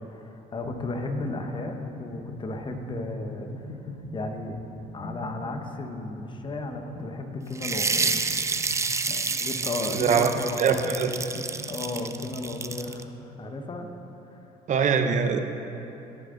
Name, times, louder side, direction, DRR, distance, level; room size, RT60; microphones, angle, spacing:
voice 1, 0.0-3.7 4.1-4.6 4.9-8.2 9.1-11.0 11.7-13.9 14.3-14.4, left 2 dB, 30° left, 5 dB, 1.0 m, -34 dB
sound 1, 0.6-12.9, left 2 dB, 90° left, 1.3 m, -43 dB
sound 2, 7.6-13.0, right 4 dB, 15° right, 0.4 m, -29 dB
voice 2, 9.9-10.3 10.6-11.1 14.7-15.4, right 6 dB, 45° right, 7 dB, 0.8 m, -22 dB
17.5 x 6.3 x 3.8 m, 2.9 s
cardioid pair, 110°, 17 cm